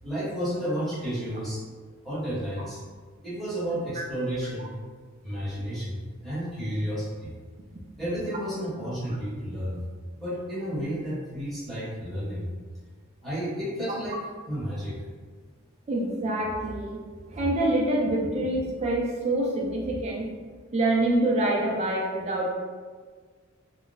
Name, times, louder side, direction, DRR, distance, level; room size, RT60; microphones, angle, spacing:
voice 1, 0.0-1.6 2.0-2.8 3.2-4.7 5.2-7.3 8.0-9.8 10.2-12.5 13.2-14.2 14.5-15.0, equal, ahead, -10 dB, 1.0 m, -31 dB
voice 2, 15.9-17.0 17.3-20.3 20.7-22.5, right 1 dB, 30° right, -2 dB, 0.4 m, -26 dB
2.4 x 2.0 x 3.8 m, 1.5 s
head